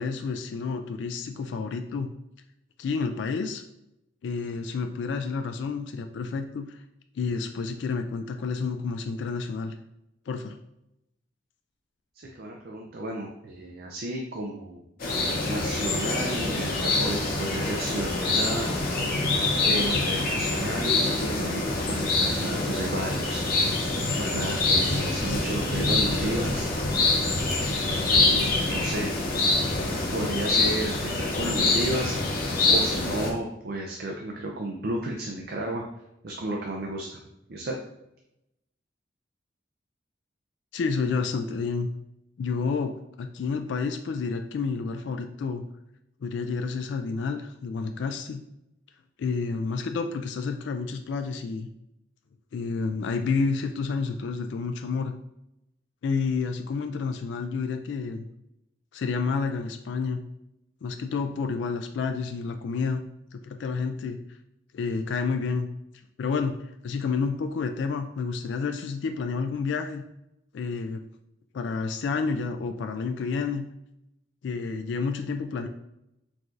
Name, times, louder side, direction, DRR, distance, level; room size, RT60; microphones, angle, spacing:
voice 1, 0.0-2.1 2.8-3.6 4.2-6.8 7.2-9.7 10.3-10.5 40.7-41.9 42.4-45.6 46.2-48.4 49.2-51.7 52.5-55.1 56.0-58.3 58.9-60.2 60.8-63.0 63.3-64.2 64.7-65.7 66.2-66.6 66.8-70.0 70.5-71.0 71.5-73.6 74.4-75.7, left 4 dB, 65° left, 6 dB, 0.3 m, -29 dB
voice 2, 12.1-14.8 15.5-18.7 19.6-23.4 24.2-26.7 28.1-29.1 30.1-35.8 36.2-37.2 37.5-37.8, right 1 dB, 55° right, 1 dB, 0.5 m, -32 dB
sound 1, 15.0-33.3, left 2 dB, 50° left, 1.0 m, -25 dB
4.7 x 2.5 x 3.8 m, 0.86 s
head